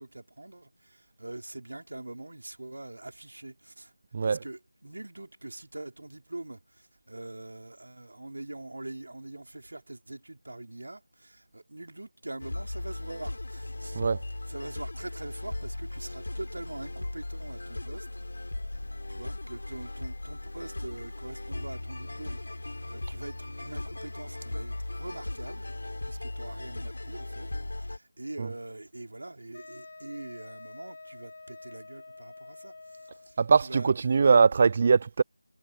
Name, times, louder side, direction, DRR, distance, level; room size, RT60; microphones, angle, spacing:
voice 1, 0.0-3.9 4.2-14.0 14.5-18.1 18.7-22.4 22.7-25.7 26.0-34.4, right 2 dB, 60° right, 3.6 m, -43 dB
voice 2, 4.1-4.4 13.9-14.2 28.4-28.5 33.4-35.2, right 5 dB, 20° right, 0.3 m, -22 dB
sound 1, 12.4-28.0, left 2 dB, 60° left, 4.0 m, -37 dB
Wind instrument woodwind instrument, 29.5-33.4, left 3 dB, 30° left, 2.5 m, -47 dB
figure-of-eight pair, 175°, 0 cm